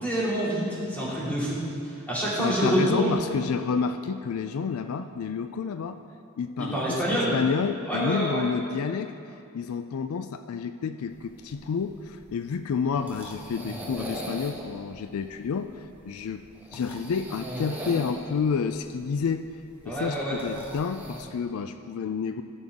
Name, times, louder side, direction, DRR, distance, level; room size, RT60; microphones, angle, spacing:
voice 1, 0.0-1.6 1.8-3.1 6.6-7.3 7.9-8.5 19.9-20.4, right 1 dB, 5° left, -8 dB, 2.7 m, -27 dB
voice 2, 2.4-6.0 6.4-16.4 16.7-19.5 19.8-22.4, left 6 dB, 75° left, 9 dB, 0.4 m, -30 dB
sound 1, 11.1-21.2, right 1 dB, 10° right, 1.2 m, -41 dB
15.5 x 6.8 x 3.6 m, 2.5 s
head